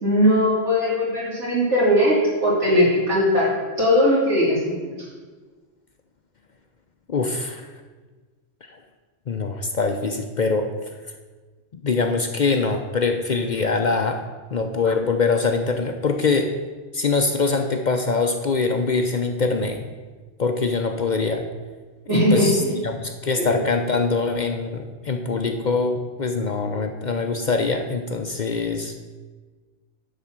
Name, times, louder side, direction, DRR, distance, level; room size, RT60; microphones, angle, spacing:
voice 1, 0.0-4.9 22.1-22.8 23.4-23.5, equal, 80° right, -6 dB, 3.6 m, -19 dB
voice 2, 7.1-7.7 9.3-10.7 11.8-14.2 14.5-16.5 16.9-19.8 20.4-21.4 22.1-29.0, left 4 dB, 50° left, 5 dB, 0.6 m, -23 dB
10.5 x 4.2 x 7.4 m, 1.4 s
omnidirectional pair, 1.2 m